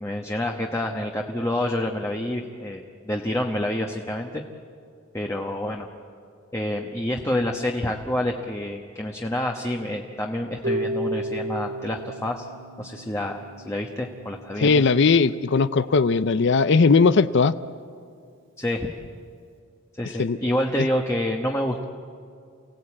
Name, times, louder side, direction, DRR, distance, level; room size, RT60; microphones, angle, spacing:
voice 1, 0.0-4.4 5.1-5.9 6.5-12.5 12.8-13.4 13.6-14.8 18.6-18.9 20.0-21.8, left 1 dB, 15° left, 1 dB, 1.1 m, -28 dB
Harp, 10.6-16.7, right 1 dB, 75° right, 3.2 m, -34 dB
voice 2, 14.6-17.6 20.2-20.4, left 4 dB, 65° left, 14 dB, 0.5 m, -18 dB
29.0 x 17.0 x 8.5 m, 2.3 s
head